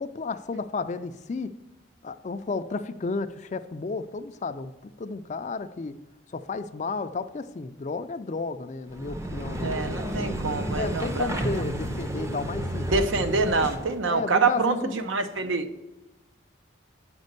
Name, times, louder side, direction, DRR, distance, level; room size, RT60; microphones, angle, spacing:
voice 1, 0.0-1.6 2.0-6.0 6.3-9.7 10.7-12.9 14.1-15.0, left 4 dB, 35° left, 11 dB, 0.4 m, -32 dB
sound 1, 8.9-14.0, right 1 dB, 15° right, 0.6 m, -31 dB
voice 2, 9.6-11.4 12.9-15.7, right 4 dB, 80° right, 9 dB, 0.7 m, -26 dB
8.9 x 5.3 x 6.6 m, 1.0 s
head